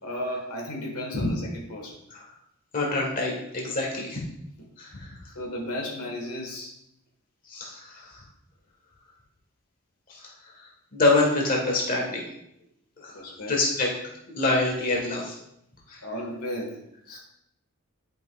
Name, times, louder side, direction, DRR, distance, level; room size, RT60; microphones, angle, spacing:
voice 1, 0.0-2.0 5.3-6.7 13.1-13.6 16.0-17.2, left 1 dB, 90° left, 0 dB, 1.5 m, -34 dB
voice 2, 2.7-4.2 4.8-5.2 7.5-8.2 10.1-10.3 10.6-12.2 13.0-13.9 14.3-15.3 15.9-16.0, left 2 dB, 40° left, -1 dB, 1.5 m, -26 dB
10.5 x 5.5 x 2.4 m, 0.78 s
head